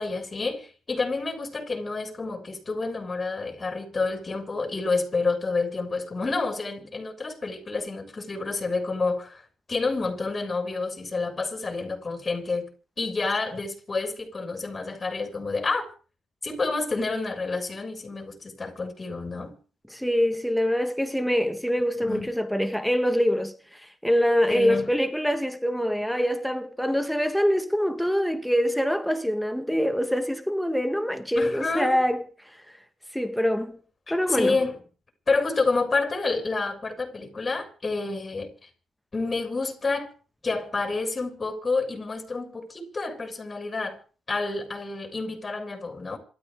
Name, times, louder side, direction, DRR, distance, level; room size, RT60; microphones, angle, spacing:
voice 1, 0.0-9.4 9.7-12.7 13.0-15.9 16.4-19.6 22.0-22.3 24.5-24.9 31.3-32.0 34.1-34.8 35.3-38.5 39.1-40.1 40.4-44.0 44.3-46.2, left 3 dB, 30° left, 6.8 m, -29 dB
voice 2, 19.9-32.2 33.1-33.8 34.1-34.6, equal, ahead, 1.6 m, -24 dB
27.0 x 13.5 x 3.7 m
cardioid pair, 90°, 0 cm